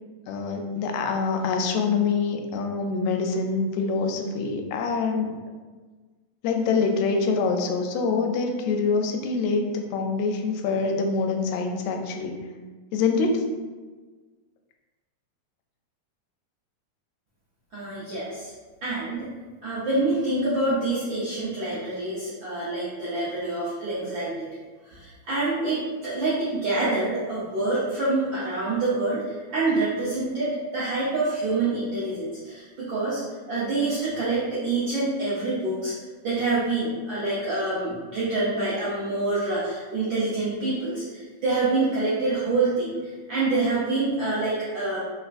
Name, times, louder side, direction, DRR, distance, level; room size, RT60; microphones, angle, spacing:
voice 1, 0.3-5.3 6.4-12.3 12.9-13.4, left 4 dB, 80° left, 3 dB, 1.8 m, -25 dB
voice 2, 17.7-18.5 18.8-19.3 19.6-24.5 24.8-35.9 36.2-45.0, right 2 dB, 85° right, -10 dB, 1.0 m, -26 dB
4.3 x 3.4 x 2.5 m, 1.4 s
omnidirectional pair, 3.3 m